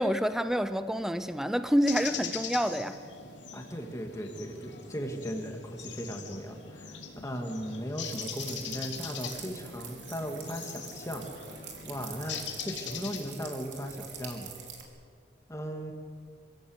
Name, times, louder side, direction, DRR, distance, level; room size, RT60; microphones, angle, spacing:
voice 1, 0.0-3.0, equal, 5° right, 11 dB, 0.6 m, -27 dB
sound 1, 1.8-13.3, left 7 dB, 90° left, 3.4 m, -41 dB
voice 2, 3.5-11.3 11.8-14.6 15.5-15.9, equal, 15° left, 2 dB, 2.6 m, -37 dB
sound 2, 8.0-14.8, right 7 dB, 80° right, 4.0 m, -46 dB
27.5 x 17.0 x 8.3 m, 2.4 s
head